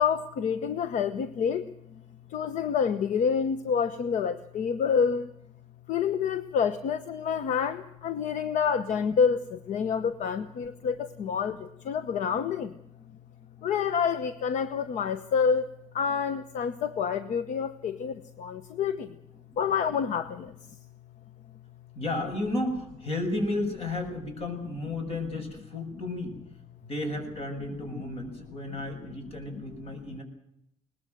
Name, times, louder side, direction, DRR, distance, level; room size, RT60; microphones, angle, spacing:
voice 1, 0.0-2.0 2.3-5.3 5.9-12.8 13.6-15.7 15.9-19.1 19.6-20.5, left 6 dB, 80° left, 11 dB, 1.0 m, -28 dB
voice 2, 21.9-26.4 26.8-30.2, left 2 dB, 55° left, 6 dB, 6.8 m, -33 dB
21.5 x 19.5 x 7.9 m, 0.76 s
cardioid pair, 120°, 12 cm